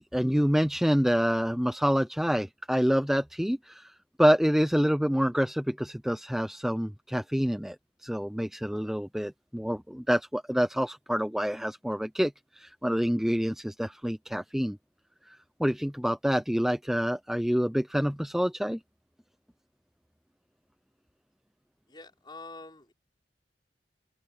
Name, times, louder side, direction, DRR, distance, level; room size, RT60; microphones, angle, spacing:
voice 1, 0.0-3.9 4.2-7.8 8.0-14.8 15.3-18.8, equal, ahead, 0.6 m, -27 dB
voice 2, 21.9-22.9, left 3 dB, 25° left, 5.9 m, -46 dB
head